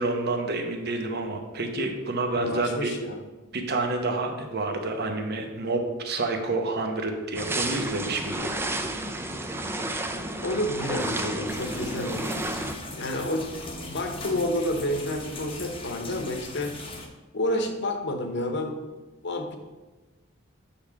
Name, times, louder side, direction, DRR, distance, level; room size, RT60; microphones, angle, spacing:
voice 1, 0.0-2.9 3.5-8.5, right 2 dB, 50° right, 4 dB, 0.9 m, -28 dB
voice 2, 2.3-3.2 10.4-12.4 12.9-13.5 13.9-16.8 17.3-19.6, left 1 dB, 55° left, 5 dB, 0.9 m, -29 dB
sound 1, 7.3-12.8, right 1 dB, 10° right, 0.4 m, -31 dB
sound 2, 11.5-17.1, left 2 dB, 25° left, 0.9 m, -39 dB
8.5 x 3.5 x 5.7 m, 1.2 s
head